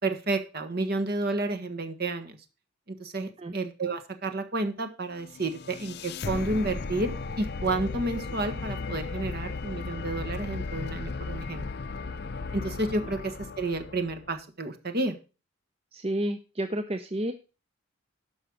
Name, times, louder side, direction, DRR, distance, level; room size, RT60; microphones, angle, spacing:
voice 1, 0.0-2.4 2.9-11.6 12.5-15.1, right 2 dB, 50° right, 7 dB, 1.5 m, -31 dB
sound 1, 5.2-14.4, left 4 dB, 55° left, 0.6 m, -36 dB
voice 2, 15.9-17.3, right 1 dB, 30° right, 8 dB, 0.6 m, -30 dB
12.0 x 5.6 x 6.3 m, 0.33 s
head